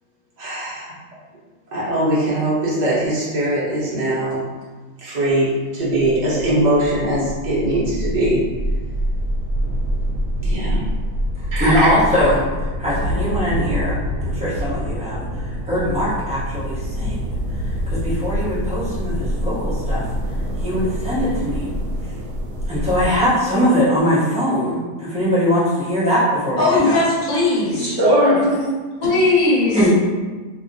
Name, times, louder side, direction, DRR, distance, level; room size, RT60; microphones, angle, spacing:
voice 1, 0.4-0.9 1.7-4.4 5.0-8.4 10.4-10.8 11.5-11.9 27.7-28.7, right 1 dB, 30° right, -9 dB, 0.9 m, -20 dB
sound 1, 6.2-23.2, equal, 85° right, 1.2 m, -25 dB
voice 2, 11.6-14.0 14.2-17.3 17.9-20.1 20.6-21.7 22.7-27.0 29.7-29.9, equal, 10° right, -10 dB, 0.3 m, -21 dB
voice 3, 26.6-27.9 28.2-28.6 29.0-29.9, left 2 dB, 65° left, -6 dB, 1.1 m, -18 dB
2.7 x 2.7 x 2.6 m, 1.3 s
omnidirectional pair, 1.7 m